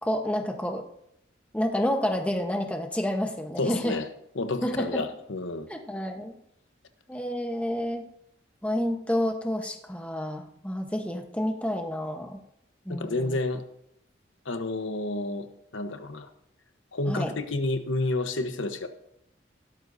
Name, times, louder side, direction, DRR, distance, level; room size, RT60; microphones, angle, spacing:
voice 1, 0.0-0.8 1.5-4.0 4.6-5.0 5.7-6.3 7.1-8.0 8.6-12.4 12.9-13.4 17.1-17.3, left 1 dB, 5° left, 3 dB, 1.0 m, -29 dB
voice 2, 3.6-4.1 4.3-5.7 12.9-13.6 14.4-16.3 16.9-18.9, left 2 dB, 80° left, 8 dB, 1.0 m, -30 dB
16.5 x 12.5 x 2.7 m, 0.76 s
head